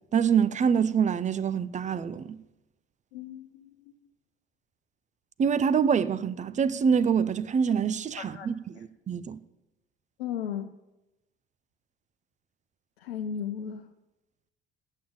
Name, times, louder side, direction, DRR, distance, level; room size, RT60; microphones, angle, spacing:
voice 1, 0.1-2.4 5.4-9.4, right 7 dB, 25° right, 0.5 m, -25 dB
voice 2, 3.1-3.7 8.2-8.5 10.2-10.7 13.0-13.8, left 8 dB, 75° left, 0.6 m, -35 dB
8.5 x 7.4 x 8.7 m
figure-of-eight pair, 55°, 30 cm